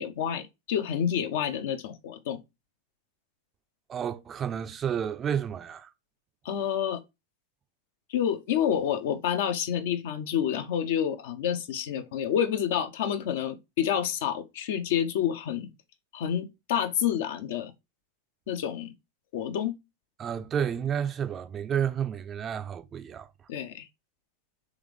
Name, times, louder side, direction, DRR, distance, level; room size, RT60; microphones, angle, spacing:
voice 1, 0.0-2.4 6.4-7.0 8.1-15.7 16.1-17.7 18.5-18.9 19.3-19.8 23.5-23.9, left 9 dB, 55° left, 0.5 m, -28 dB
voice 2, 3.9-5.9 20.2-23.3, right 8 dB, 25° right, 0.4 m, -31 dB
3.5 x 3.0 x 3.3 m
figure-of-eight pair, 90°, 0 cm